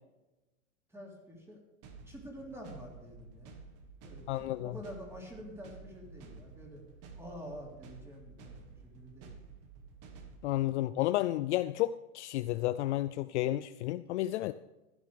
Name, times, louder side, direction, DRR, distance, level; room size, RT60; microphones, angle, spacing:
voice 1, 0.9-1.6 2.0-3.6 4.0-4.3 4.6-6.8 7.1-8.6 8.8-9.3 10.7-10.8, equal, 5° right, -1 dB, 3.4 m, -47 dB
sound 1, 1.8-10.6, right 5 dB, 35° right, 1.6 m, -52 dB
voice 2, 4.3-4.7 10.4-14.5, left 15 dB, 55° left, 13 dB, 0.5 m, -31 dB
16.0 x 11.5 x 3.5 m, 1.1 s
hypercardioid pair, 135°, 43 cm